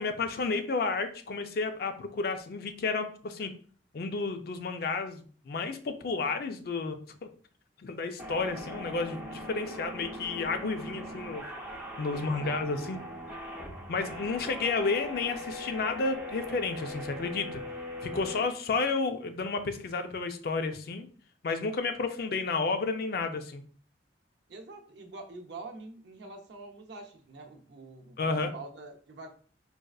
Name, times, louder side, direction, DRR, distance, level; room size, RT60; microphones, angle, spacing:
voice 1, 0.0-3.5 3.9-7.3 7.8-11.5 12.0-13.0 13.9-17.6 18.0-21.1 21.4-23.6 28.2-28.5, left 4 dB, 60° left, 7 dB, 0.4 m, -31 dB
sound 1, 8.2-18.5, equal, 10° right, 0.6 m, -40 dB
voice 2, 12.1-12.9 24.5-29.3, right 3 dB, 70° right, 3 dB, 0.6 m, -46 dB
4.0 x 2.4 x 2.3 m, 0.42 s
head